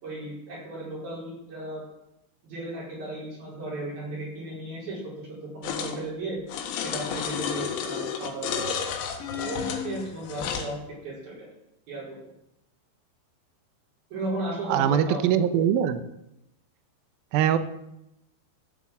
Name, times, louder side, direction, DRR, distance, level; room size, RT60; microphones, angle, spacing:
voice 1, 0.0-1.8 2.4-6.4 6.8-8.7 9.3-11.5 11.9-12.2 14.1-15.3, right 1 dB, 55° right, -7 dB, 6.4 m, -35 dB
sound 1, 5.6-6.0 6.5-10.7, left 7 dB, 90° left, 3.9 m, -32 dB
sound 2, 5.9-6.3 7.1-8.0 9.2-10.0, left 9 dB, 60° left, 4.1 m, -37 dB
voice 2, 14.7-16.0 17.3-17.6, right 9 dB, 80° right, 10 dB, 2.2 m, -22 dB
14.5 x 8.1 x 7.5 m, 0.85 s
omnidirectional pair, 5.3 m